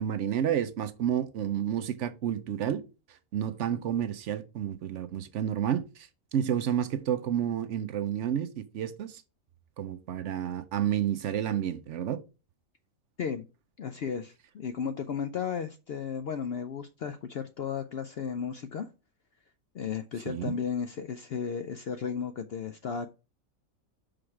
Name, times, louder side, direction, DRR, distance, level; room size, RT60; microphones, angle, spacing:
voice 1, 0.0-2.8 3.3-9.2 9.8-12.2 20.3-20.5, right 10 dB, 65° right, 0.8 m, -30 dB
voice 2, 13.8-18.9 19.7-23.1, left 7 dB, 65° left, 0.6 m, -34 dB
5.8 x 5.1 x 4.7 m
omnidirectional pair, 1.5 m